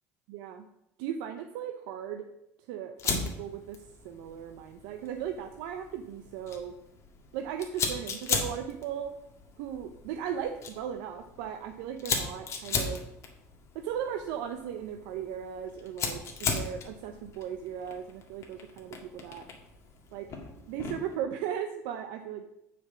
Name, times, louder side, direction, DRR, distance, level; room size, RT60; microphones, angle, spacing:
voice 1, 0.3-0.7 1.0-2.3 2.7-6.7 7.3-9.1 9.6-13.0 13.7-19.4 20.1-20.3 20.6-22.4, right 9 dB, 75° right, 6 dB, 0.7 m, -37 dB
Fire, 3.0-21.2, left 5 dB, 45° left, 1.8 m, -37 dB
6.9 x 5.2 x 6.9 m, 0.85 s
supercardioid pair, 100°, 7 cm